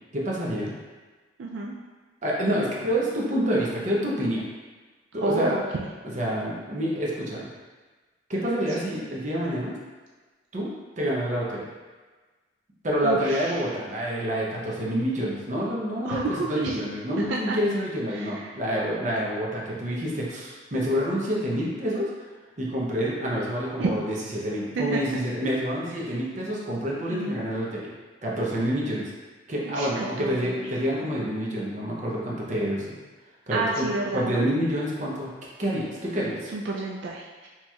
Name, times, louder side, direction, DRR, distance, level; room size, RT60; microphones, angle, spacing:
voice 1, 0.1-0.7 2.2-4.4 5.1-5.6 6.1-7.5 8.3-9.8 10.5-11.7 12.8-22.1 22.6-27.9 28.2-29.1 29.5-33.0 33.5-33.9 34.1-35.3 35.6-36.5, equal, 40° right, -5 dB, 0.7 m, -27 dB
voice 2, 1.4-1.7 5.2-5.9 13.0-13.5 16.0-16.8 17.2-17.6 18.1-18.6 23.8-23.9 24.8-25.0 27.1-27.4 29.7-30.7 33.5-34.5 36.5-37.5, right 3 dB, 75° right, -2 dB, 0.3 m, -29 dB
4.2 x 3.0 x 2.3 m, 1.3 s
head